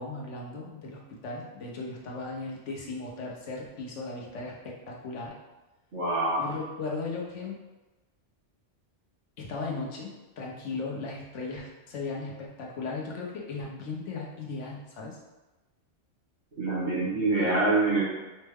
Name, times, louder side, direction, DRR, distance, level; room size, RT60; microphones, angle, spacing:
voice 1, 0.0-5.4 6.4-7.6 9.4-15.2, left 3 dB, 85° left, -2 dB, 1.2 m, -37 dB
voice 2, 5.9-6.5 16.6-18.0, right 2 dB, 85° right, -7 dB, 1.9 m, -25 dB
5.4 x 2.2 x 3.4 m, 1.1 s
omnidirectional pair, 1.2 m